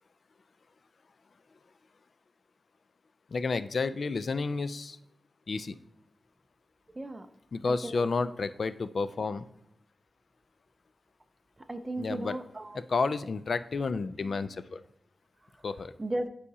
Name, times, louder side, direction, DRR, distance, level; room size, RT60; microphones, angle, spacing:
voice 1, 3.3-5.0 5.5-5.8 7.5-9.5 12.0-12.4 12.7-14.8 15.6-15.9, left 4 dB, 60° left, 13 dB, 0.3 m, -31 dB
voice 2, 7.0-7.3 7.6-8.1 11.6-12.8 16.0-16.3, right 1 dB, 25° right, 8 dB, 0.4 m, -35 dB
8.3 x 4.8 x 2.7 m, 0.75 s
wide cardioid pair, 115°, 0 cm